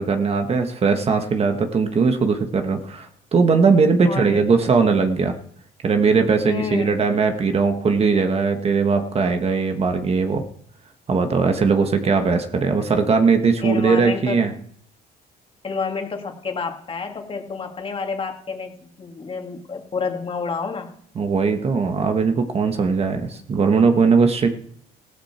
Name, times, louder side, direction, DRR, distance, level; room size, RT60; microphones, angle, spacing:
voice 1, 0.0-5.3 5.8-10.4 11.1-14.5 21.1-24.5, right 5 dB, 35° right, 6 dB, 1.6 m, -19 dB
voice 2, 4.0-4.4 6.4-6.9 13.6-14.5 15.6-20.9, left 5 dB, 30° left, 4 dB, 2.5 m, -29 dB
16.0 x 13.5 x 4.5 m, 0.65 s
cardioid pair, 110°, 17 cm